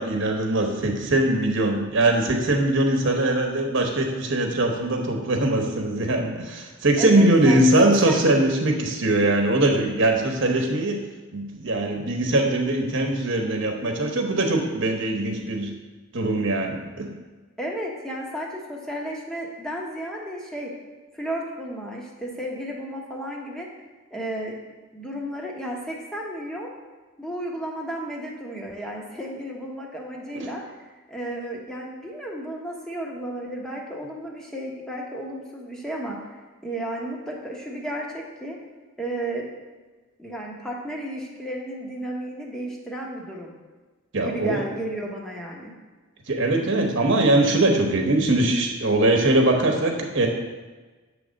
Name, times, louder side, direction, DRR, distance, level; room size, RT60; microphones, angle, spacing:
voice 1, 0.0-15.8 16.1-17.1 30.3-30.5 44.1-44.6 46.3-50.3, right 1 dB, 60° right, 2 dB, 1.1 m, -21 dB
voice 2, 7.0-8.2 17.6-20.7 21.1-23.7 24.1-24.5 24.9-26.7 27.2-30.6 31.1-36.2 36.6-38.6 39.0-39.5 40.2-43.5 44.2-45.7, right 1 dB, 5° left, -2 dB, 1.0 m, -33 dB
7.7 x 3.3 x 6.3 m, 1.3 s
head